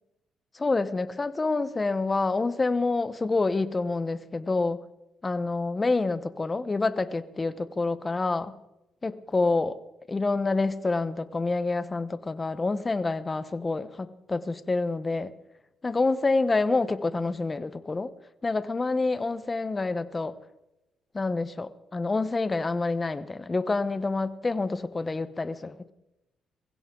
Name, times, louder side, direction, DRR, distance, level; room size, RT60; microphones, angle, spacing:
voice 1, 0.5-4.8 5.2-8.5 9.0-9.8 10.1-15.3 15.8-18.1 18.4-20.3 21.1-25.9, left 3 dB, 25° left, 14 dB, 1.0 m, -27 dB
22.0 x 16.0 x 3.9 m, 0.93 s
cardioid pair, 90°, 0 cm